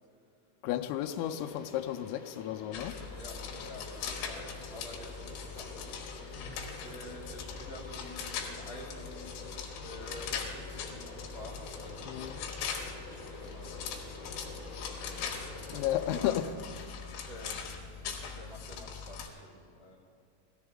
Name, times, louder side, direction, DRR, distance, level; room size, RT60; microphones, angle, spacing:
voice 1, 0.6-3.0 12.1-12.4 15.7-16.5, left 12 dB, 90° left, 4 dB, 3.3 m, -33 dB
sound 1, 1.0-16.2, left 3 dB, 30° left, 3.1 m, -48 dB
sound 2, 2.7-19.3, left 6 dB, 70° left, 3.4 m, -41 dB
voice 2, 3.1-9.3 9.8-12.5 12.9-16.4 17.3-17.7 18.3-19.9, left 1 dB, 80° right, -4 dB, 1.4 m, -49 dB
18.0 x 14.0 x 3.6 m, 2.5 s
omnidirectional pair, 5.9 m